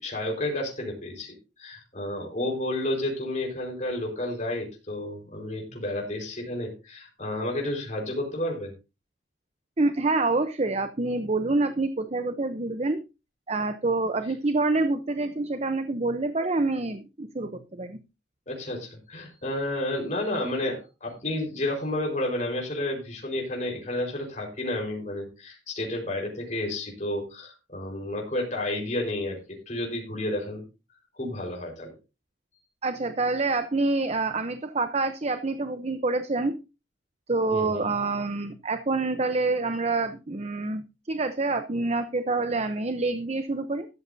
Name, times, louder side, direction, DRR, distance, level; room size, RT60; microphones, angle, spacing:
voice 1, 0.0-8.7 18.5-29.4 29.7-30.6 31.1-31.9 37.5-37.9, left 1 dB, 40° left, -1 dB, 4.5 m, -31 dB
voice 2, 9.8-13.0 13.5-18.0 32.8-36.6 37.3-40.8 41.1-43.9, right 3 dB, 35° right, 9 dB, 0.8 m, -27 dB
13.5 x 13.0 x 2.7 m, 0.28 s
head